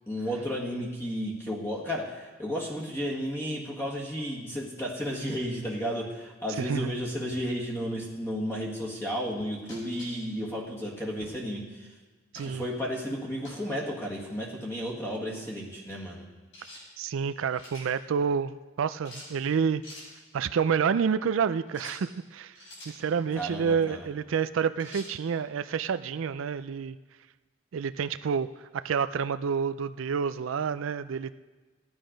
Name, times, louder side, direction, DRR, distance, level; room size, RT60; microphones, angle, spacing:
voice 1, 0.1-11.9 12.4-16.2 23.4-24.1, equal, 15° left, -3 dB, 1.7 m, -33 dB
voice 2, 6.6-6.9 12.3-12.6 17.0-19.8 20.3-22.6 22.9-27.0 27.7-31.3, right 6 dB, 80° right, 13 dB, 0.4 m, -29 dB
sound 1, 9.7-10.3 11.2-11.4 12.3-12.6 13.4-13.7 16.5-16.8 17.3-17.9 19.0-19.3 19.8-20.1 21.7-22.0 22.5-23.0 24.8-25.1, left 1 dB, 70° left, 5.5 m, -46 dB
15.5 x 9.8 x 5.1 m, 1.3 s
head